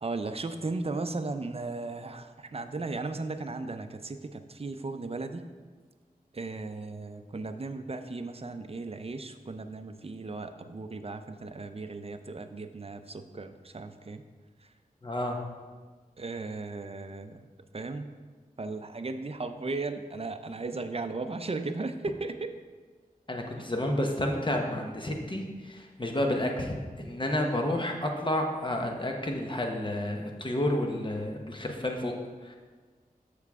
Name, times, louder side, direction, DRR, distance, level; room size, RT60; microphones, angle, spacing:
voice 1, 0.0-5.5 6.3-14.2 16.2-17.4 17.7-18.1 18.6-22.5 23.6-23.7, right 3 dB, 40° right, 8 dB, 0.5 m, -36 dB
voice 2, 15.0-15.4 23.3-32.1 32.4-32.6, left 1 dB, 30° left, 2 dB, 1.0 m, -30 dB
7.1 x 6.6 x 3.6 m, 1.4 s
wide cardioid pair, 60°, 15 cm